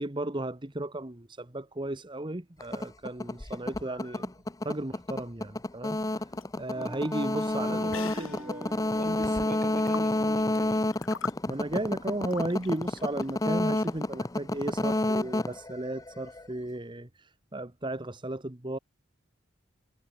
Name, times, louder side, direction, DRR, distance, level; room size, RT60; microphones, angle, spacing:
voice 1, 0.0-4.3 4.6-6.0 6.6-7.9 11.5-18.8, right 1 dB, 25° right, 1.3 m, -34 dB
sound 1, 2.6-16.5, left 2 dB, 15° left, 0.7 m, -30 dB
sound 2, 6.1-14.0, left 6 dB, 85° left, 1.1 m, -44 dB
Wind instrument woodwind instrument, 6.7-11.0, equal, 5° right, 2.4 m, -44 dB
voice 2, 7.6-10.8, right 1 dB, 40° right, 4.2 m, -42 dB
head